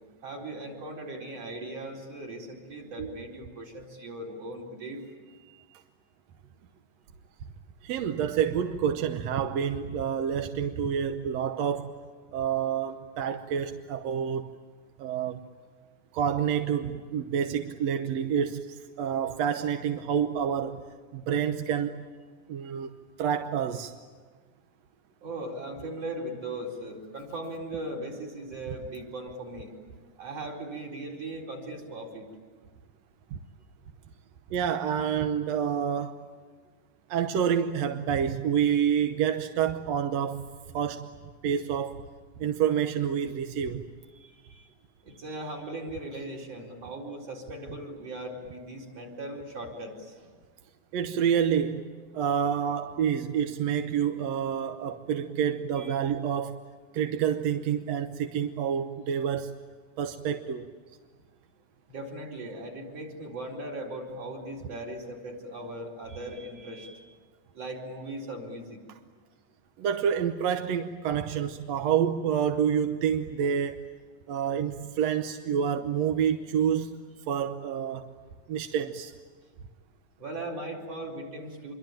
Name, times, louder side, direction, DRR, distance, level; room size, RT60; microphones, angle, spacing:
voice 1, 0.2-5.8 25.2-29.7 30.2-32.3 44.1-44.7 45.0-50.3 55.8-56.0 61.9-67.1 67.6-68.8 80.2-81.7, right 1 dB, 50° right, 5.3 m, -39 dB
voice 2, 7.8-11.9 12.3-14.5 15.0-15.5 16.1-20.8 21.1-22.0 22.5-22.9 23.2-24.0 34.5-36.2 37.1-40.5 40.7-41.1 41.4-42.0 42.4-43.8 50.9-51.9 52.1-56.6 56.9-59.6 60.0-60.7 69.8-73.8 74.3-77.0 77.3-78.1 78.5-79.1, right 8 dB, 70° right, 1.8 m, -28 dB
26.5 x 24.0 x 9.0 m
omnidirectional pair, 3.6 m